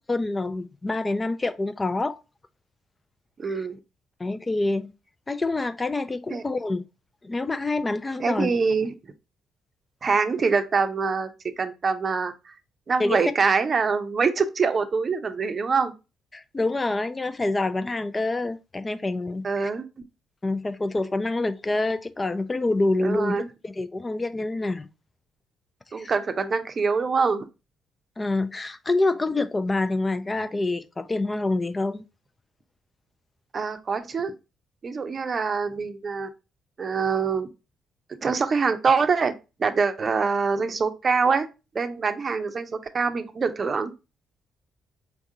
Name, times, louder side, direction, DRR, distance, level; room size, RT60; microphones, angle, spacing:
voice 1, 0.1-2.2 3.4-3.7 4.2-4.9 5.3-6.8 7.2-8.5 13.0-13.2 16.3-19.7 20.4-24.9 26.0-26.1 28.2-32.0, left 2 dB, 25° left, 0.5 m, -26 dB
voice 2, 3.4-3.8 6.3-6.4 8.2-8.9 10.0-11.3 11.6-12.5 12.9-15.9 19.4-19.9 23.0-23.5 25.9-27.5 33.5-34.3 34.8-36.3 36.8-37.5 38.2-39.3 39.6-41.5 41.7-43.9, right 5 dB, 40° right, 0.6 m, -24 dB
4.7 x 3.5 x 2.6 m
hypercardioid pair, 45°, 0 cm